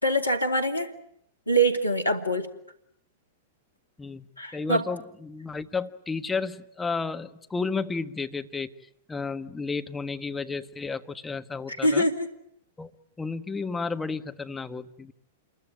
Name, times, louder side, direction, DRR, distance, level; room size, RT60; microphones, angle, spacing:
voice 1, 0.0-0.9 1.5-2.5 4.4-4.9 11.7-12.3, right 1 dB, 90° left, 7 dB, 2.6 m, -24 dB
voice 2, 4.5-8.7 9.1-12.1 12.8-12.9 13.2-15.1, left 4 dB, 10° left, 8 dB, 1.5 m, -32 dB
28.0 x 22.5 x 9.1 m, 0.73 s
figure-of-eight pair, 100°, 0 cm